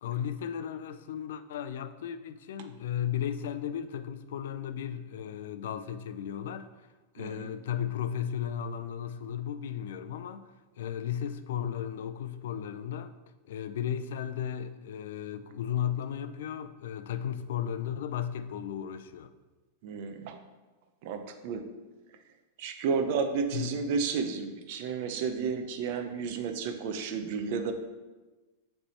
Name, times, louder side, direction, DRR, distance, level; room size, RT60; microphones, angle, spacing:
voice 1, 0.0-6.7 7.1-10.5 10.8-13.1 13.4-19.3 23.5-23.7, left 9 dB, 75° left, 0.4 m, -35 dB
voice 2, 7.2-7.5 19.8-20.4 21.0-21.7 22.6-27.7, right 5 dB, 50° right, 0.6 m, -32 dB
6.9 x 3.3 x 4.3 m
supercardioid pair, 165°, 0 cm